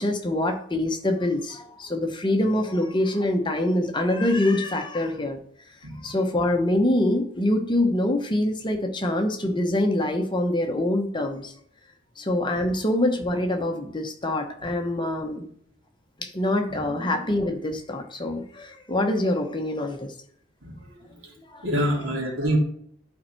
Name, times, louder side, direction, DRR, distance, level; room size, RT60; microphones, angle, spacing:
voice 1, 0.0-5.4 6.0-11.5 12.2-15.5 16.2-20.1 21.5-21.6, left 1 dB, 25° left, 4 dB, 0.9 m, -25 dB
voice 2, 20.6-21.3 21.6-22.6, equal, 85° right, -1 dB, 2.8 m, -27 dB
11.5 x 4.4 x 4.5 m, 0.65 s
head